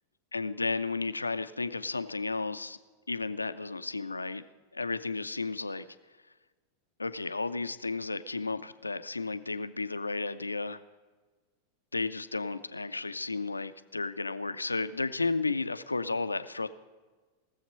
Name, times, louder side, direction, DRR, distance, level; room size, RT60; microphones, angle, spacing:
voice 1, 0.3-2.8 3.1-4.4 4.7-5.9 7.0-10.8 11.9-16.7, left 3 dB, 80° left, 12 dB, 0.4 m, -33 dB
18.0 x 7.2 x 5.4 m, 1.3 s
figure-of-eight pair, 90°, 0 cm